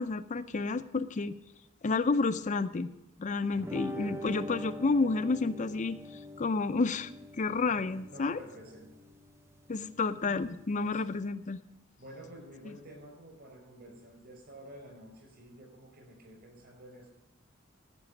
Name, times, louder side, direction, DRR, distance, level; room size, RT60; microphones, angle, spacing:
voice 1, 0.0-1.3 1.8-2.9 3.2-6.0 6.4-7.1 7.4-8.4 9.7-11.6, left 3 dB, 35° left, 10 dB, 0.5 m, -30 dB
sound 1, 3.5-11.2, equal, 15° right, 0.5 m, -45 dB
voice 2, 3.9-4.3 7.6-9.0 10.7-11.0 12.0-17.1, equal, 50° right, 2 dB, 5.7 m, -50 dB
14.5 x 6.1 x 8.5 m, 0.90 s
head